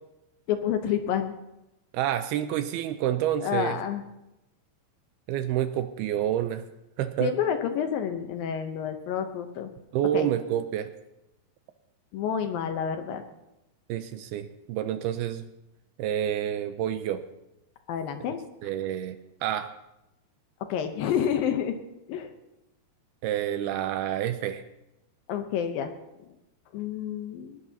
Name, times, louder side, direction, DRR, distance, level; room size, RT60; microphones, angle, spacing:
voice 1, 0.5-1.3 3.4-4.0 7.2-9.7 10.1-10.3 12.1-13.2 17.9-18.4 20.6-21.8 22.1-22.3 25.3-25.9 26.2-26.3 26.7-27.6, left 8 dB, 75° left, 7 dB, 2.2 m, -29 dB
voice 2, 1.9-3.8 5.3-6.6 7.0-7.3 9.9-10.9 13.9-15.5 16.0-17.2 18.6-19.7 23.2-24.6, right 11 dB, 80° right, 9 dB, 2.3 m, -28 dB
19.5 x 19.5 x 2.8 m, 0.94 s
omnidirectional pair, 4.9 m